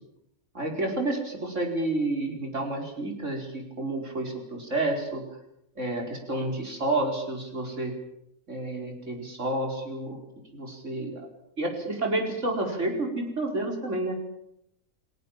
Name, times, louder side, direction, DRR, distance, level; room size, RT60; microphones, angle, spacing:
voice 1, 0.5-5.2 5.8-7.9 8.5-10.2 10.5-11.3 11.6-14.2, right 2 dB, 60° right, 2 dB, 5.3 m, -30 dB
30.0 x 19.0 x 7.5 m, 0.78 s
omnidirectional pair, 1.4 m